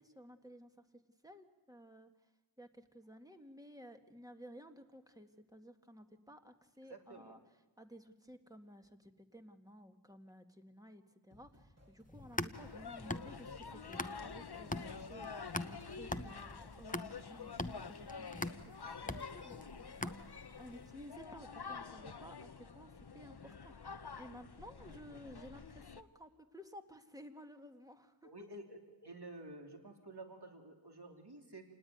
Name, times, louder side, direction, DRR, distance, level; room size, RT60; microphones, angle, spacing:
voice 1, 0.0-2.1 2.6-7.4 7.8-14.8 15.1-18.4 18.8-28.3, equal, 5° right, 6 dB, 1.8 m, -55 dB
voice 2, 6.9-7.4 25.2-25.3 28.2-31.7, right 2 dB, 50° right, 3 dB, 3.2 m, -51 dB
sound 1, 11.3-16.9, equal, 30° right, 3.1 m, -60 dB
sound 2, 12.1-14.4 14.7-20.6, left 2 dB, 15° left, 0.9 m, -42 dB
sound 3, 12.5-26.0, left 5 dB, 50° left, 0.9 m, -48 dB
28.0 x 19.0 x 9.4 m, 1.2 s
wide cardioid pair, 40°, 49 cm